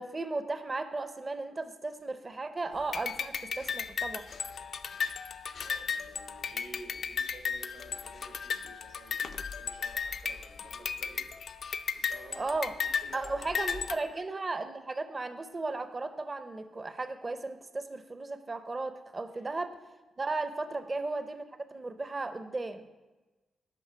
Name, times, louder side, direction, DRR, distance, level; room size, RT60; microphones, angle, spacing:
voice 1, 0.0-4.3 12.3-12.7 13.1-19.7 20.2-21.5 21.7-22.9, right 3 dB, 25° right, 9 dB, 0.6 m, -35 dB
sound 1, 2.9-14.0, left 6 dB, 55° left, 0.4 m, -35 dB
voice 2, 5.6-11.3 11.8-14.1 19.3-19.4 20.6-20.9, right 2 dB, 85° right, -2 dB, 3.0 m, -53 dB
9.1 x 5.5 x 5.6 m, 1.2 s
wide cardioid pair, 135°, 0 cm